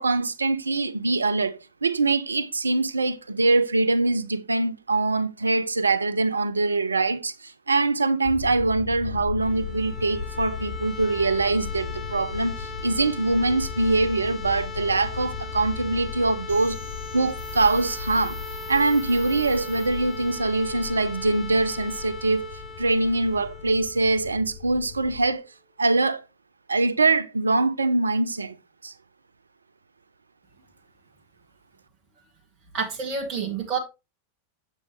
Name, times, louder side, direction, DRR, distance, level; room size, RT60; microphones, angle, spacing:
voice 1, 0.0-16.8 17.1-18.4 18.7-25.5 25.8-26.2 26.7-28.6 28.8-28.9, right 3 dB, 75° right, 0.5 m, -23 dB
sound 1, 8.2-25.3, left 6 dB, 50° left, 1.2 m, -37 dB
sound 2, 9.3-25.1, left 4 dB, 15° left, 0.9 m, -40 dB
sound 3, 16.5-20.4, right 5 dB, 55° right, 1.7 m, -44 dB
voice 2, 32.7-33.8, right 5 dB, 35° right, 1.7 m, -28 dB
7.4 x 7.2 x 3.1 m
figure-of-eight pair, 90°, 0 cm